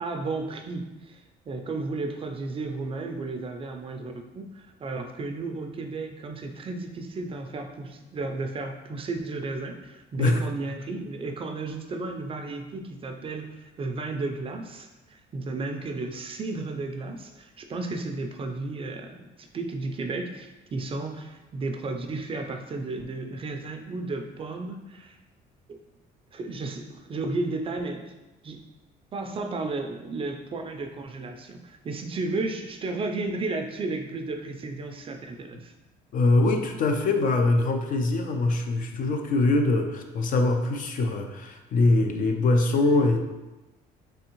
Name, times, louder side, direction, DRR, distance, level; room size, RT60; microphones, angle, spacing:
voice 1, 0.0-25.2 25.7-25.8 26.3-28.0 28.4-28.6 29.1-35.7, right 3 dB, 35° right, 4 dB, 0.4 m, -33 dB
voice 2, 36.1-43.2, left 2 dB, 50° left, 5 dB, 0.5 m, -23 dB
3.4 x 3.3 x 3.0 m, 1.1 s
cardioid pair, 110°, 17 cm